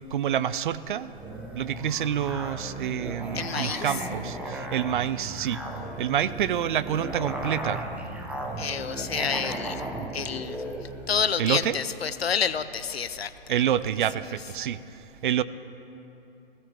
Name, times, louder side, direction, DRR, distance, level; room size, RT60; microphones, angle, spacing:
voice 1, 0.1-1.1 1.5-5.6 6.0-7.8 11.4-11.8 13.5-14.8 15.2-15.4, right 10 dB, 55° right, 15 dB, 0.5 m, -27 dB
Musical instrument, 1.1-11.3, right 1 dB, 5° right, 0.9 m, -35 dB
voice 2, 3.3-3.9 8.6-9.8 10.1-10.6 11.1-13.5, left 7 dB, 85° left, 14 dB, 0.6 m, -29 dB
17.0 x 15.0 x 3.5 m, 3.0 s
figure-of-eight pair, 115°, 30 cm